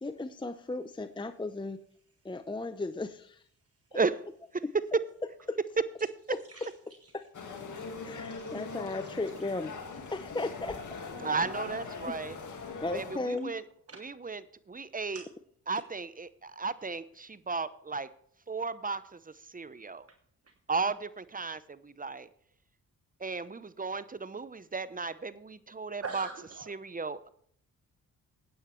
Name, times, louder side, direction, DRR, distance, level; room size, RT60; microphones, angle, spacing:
voice 1, 0.0-1.8 2.2-3.4 3.9-4.0 5.5-5.6 7.1-7.2 8.0-9.7 10.1-10.8 11.3-11.4 12.1-12.2 12.8-13.5, left 2 dB, 15° left, 11 dB, 0.7 m, -35 dB
sound 1, 7.3-13.2, left 4 dB, 50° left, 1.9 m, -41 dB
voice 2, 8.2-8.6 11.4-11.8 12.6-12.7 13.9-14.1 15.1-15.3 15.7-15.8 26.0-26.7, right 4 dB, 40° right, 6 dB, 1.2 m, -44 dB
voice 3, 11.2-12.4 12.9-13.6 14.0-14.4 14.7-15.2 15.7-18.1 18.5-19.2 19.5-20.1 20.7-22.3 23.2-26.3 26.7-27.3, right 4 dB, 20° right, 15 dB, 0.8 m, -34 dB
16.5 x 9.4 x 3.2 m, 0.63 s
hypercardioid pair, 45°, 38 cm